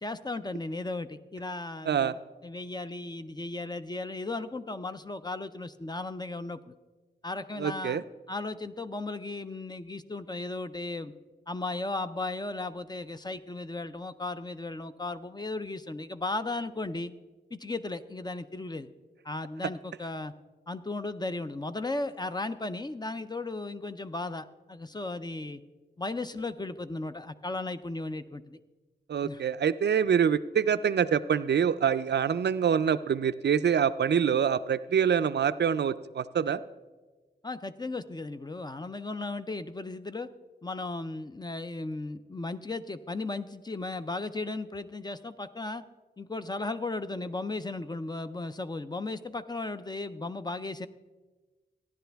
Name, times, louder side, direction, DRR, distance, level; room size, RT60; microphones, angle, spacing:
voice 1, 0.0-2.2 2.4-6.7 7.2-8.0 8.3-11.1 11.5-17.1 17.5-18.9 19.2-20.3 20.7-25.6 26.0-28.6 29.2-29.4 37.4-40.3 40.6-45.8 46.2-50.9, left 2 dB, 25° left, 12 dB, 0.4 m, -36 dB
voice 2, 7.6-8.0 29.1-36.6, right 7 dB, 70° right, 14 dB, 0.4 m, -25 dB
14.5 x 10.5 x 3.4 m, 1.2 s
wide cardioid pair, 90°, 19 cm